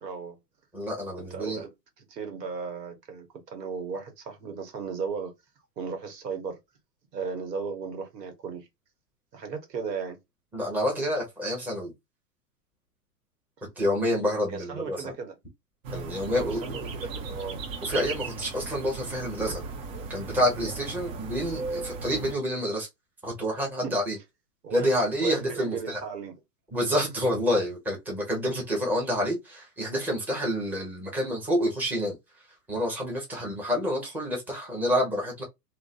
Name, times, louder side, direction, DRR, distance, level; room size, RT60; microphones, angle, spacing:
voice 1, 0.0-0.4 1.3-1.7 2.0-5.3 5.8-6.6 7.1-8.7 9.3-10.2 14.5-15.3 16.3-17.6 19.4-19.6 23.8-23.9 24.6-24.9 25.2-26.3, right 5 dB, 75° right, 1.1 m, -35 dB
voice 2, 0.7-1.6 10.5-11.9 13.8-15.1 15.9-16.6 17.8-19.6 20.1-22.9 23.2-24.2 24.7-26.0 26.7-32.2 32.7-35.4, equal, 5° right, 0.8 m, -28 dB
sound 1, 15.8-22.3, right 4 dB, 50° right, 1.0 m, -36 dB
2.5 x 2.2 x 2.3 m
hypercardioid pair, 120°, 50 cm